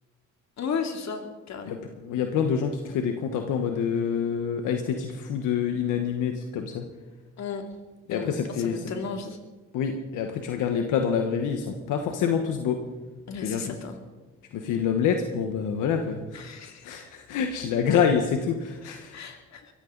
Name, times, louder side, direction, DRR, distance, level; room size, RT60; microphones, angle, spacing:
voice 1, 0.6-1.8 7.4-7.6 8.1-9.4 13.3-14.0 16.3-16.9 18.8-19.6, left 5 dB, 65° left, 4 dB, 2.7 m, -34 dB
voice 2, 1.7-6.9 8.1-8.8 9.7-12.8 13.4-13.8 14.5-16.5 16.8-19.2, left 7 dB, 90° left, 5 dB, 1.3 m, -27 dB
22.5 x 15.0 x 4.0 m, 1.3 s
cardioid pair, 90°, 30 cm